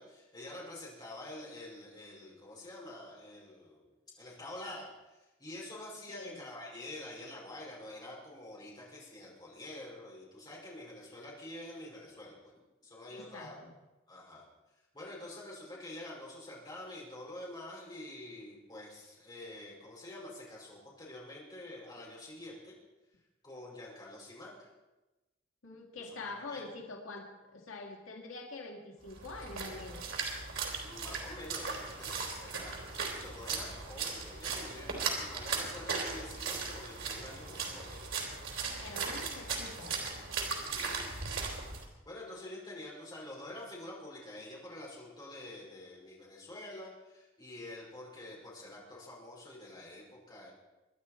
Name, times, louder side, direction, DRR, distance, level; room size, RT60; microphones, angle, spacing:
voice 1, 0.0-3.9 4.2-12.4 12.8-13.6 14.1-14.4 14.9-22.7 23.4-24.7 26.0-26.6 30.8-38.1 39.1-39.3 40.5-41.5 42.1-50.5, left 1 dB, 20° left, -5 dB, 5.4 m, -47 dB
voice 2, 6.1-6.4 13.1-13.7 25.6-30.1 38.8-40.0, left 3 dB, 85° left, 1 dB, 2.0 m, -45 dB
Splash splatter, 29.1-41.8, right 4 dB, 90° right, 3.5 m, -38 dB
24.0 x 10.5 x 4.4 m, 1.1 s
head